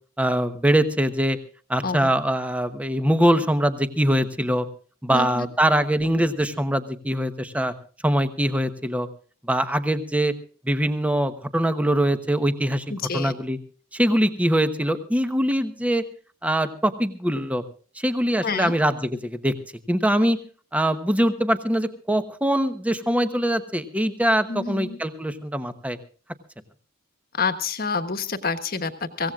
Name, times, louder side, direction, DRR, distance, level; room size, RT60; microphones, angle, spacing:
voice 1, 0.2-1.4 1.7-4.7 5.0-7.7 8.0-9.1 9.4-10.3 10.6-12.8 13.1-13.6 13.9-16.0 16.4-17.6 18.0-19.5 19.9-20.4 20.7-26.0, right 1 dB, 5° right, 9 dB, 1.0 m, -23 dB
voice 2, 5.1-5.5 12.9-13.3 18.4-18.7 24.5-25.0 27.4-29.3, left 4 dB, 45° left, 9 dB, 1.3 m, -28 dB
24.5 x 16.5 x 2.4 m, 0.40 s
head